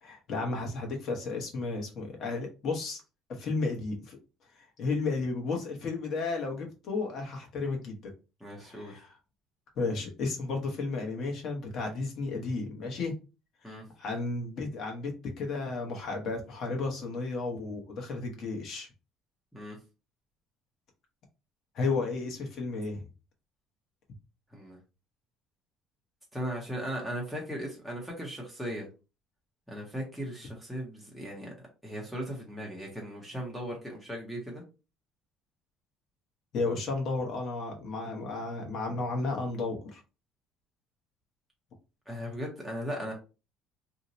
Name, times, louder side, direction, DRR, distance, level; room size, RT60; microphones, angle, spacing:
voice 1, 0.0-3.0 3.3-4.2 4.6-8.1 8.6-9.1 9.8-13.1 14.0-18.9 21.7-23.1 36.5-40.0, left 3 dB, 40° left, 0.9 m, -33 dB
voice 2, 8.4-8.9 13.6-13.9 19.5-19.8 24.5-24.8 26.3-28.9 29.7-31.5 31.8-34.6 42.1-43.1, equal, ahead, 0.7 m, -37 dB
2.7 x 2.1 x 3.8 m
cardioid pair, 170°, 0 cm